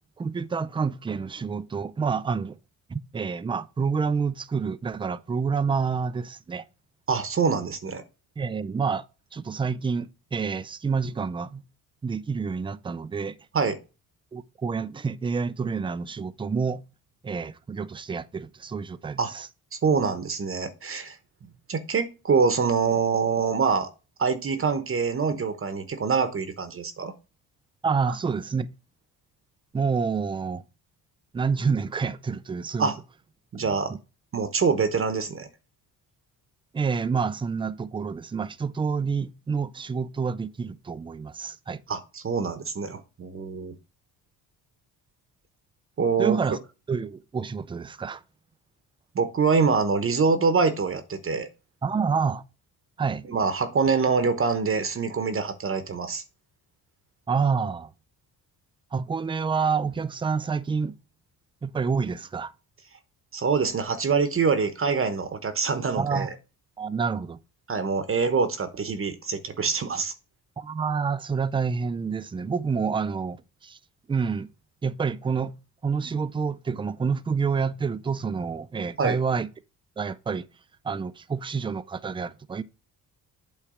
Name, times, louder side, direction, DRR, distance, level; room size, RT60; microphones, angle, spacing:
voice 1, 0.2-2.6 2.9-6.6 8.4-9.0 9.3-11.6 12.0-13.4 14.3-16.8 17.2-19.5 27.8-28.7 29.7-30.6 31.3-32.9 33.5-34.0 36.7-41.8 46.2-46.6 46.9-48.2 51.8-52.4 53.0-53.2 57.3-57.9 58.9-60.9 61.6-62.5 66.0-66.3 66.8-67.4 70.6-73.8 74.1-74.5 74.8-75.5 75.8-79.5 80.0-80.4 80.8-82.6, right 5 dB, 15° right, 0.4 m, -28 dB
voice 2, 7.1-8.0 13.5-13.8 19.2-19.3 19.8-21.2 21.4-23.9 24.2-27.1 32.8-32.9 33.5-33.9 34.3-35.5 41.9-43.7 46.0-46.6 49.1-51.5 53.3-56.2 63.3-66.3 67.7-70.1 79.0-79.2, right 5 dB, 35° right, 0.9 m, -25 dB
8.6 x 3.2 x 4.9 m
cardioid pair, 95°, 38 cm